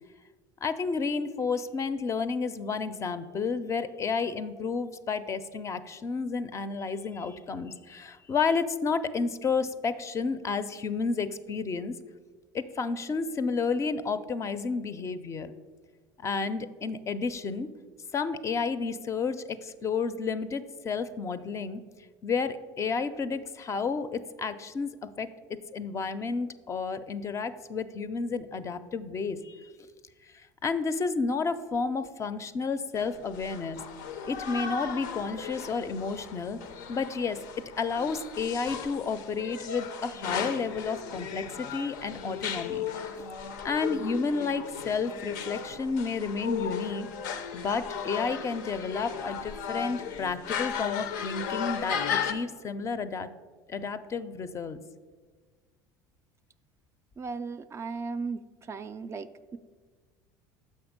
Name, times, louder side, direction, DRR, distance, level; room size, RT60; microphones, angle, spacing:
voice 1, 0.6-11.9 12.5-15.5 16.2-17.7 18.1-21.8 22.2-29.7 30.6-33.8 34.3-36.6 36.9-37.4 37.8-42.9 43.6-47.1 47.5-53.3 53.7-54.8, left 5 dB, 30° left, 12 dB, 0.4 m, -31 dB
sound 1, 32.9-52.3, left 7 dB, 80° left, 0.5 m, -36 dB
voice 2, 57.2-58.4 58.7-59.6, right 4 dB, 30° right, 11 dB, 0.3 m, -36 dB
6.6 x 5.3 x 5.1 m, 1.5 s
hypercardioid pair, 85°, 9 cm